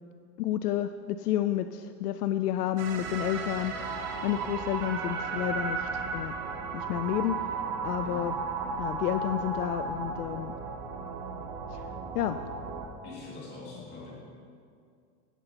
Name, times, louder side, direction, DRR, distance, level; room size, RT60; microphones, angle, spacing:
voice 1, 0.4-6.3 6.7-7.6 7.8-8.4 8.8-10.5 11.7-11.9 12.1-12.4, left 12 dB, 70° left, 10 dB, 0.5 m, -30 dB
sound 1, 2.8-12.9, right 4 dB, 25° right, 0.8 m, -35 dB
voice 2, 13.0-14.1, left 3 dB, 20° left, -4 dB, 2.2 m, -43 dB
17.5 x 9.6 x 2.9 m, 2.3 s
supercardioid pair, 170°, 48 cm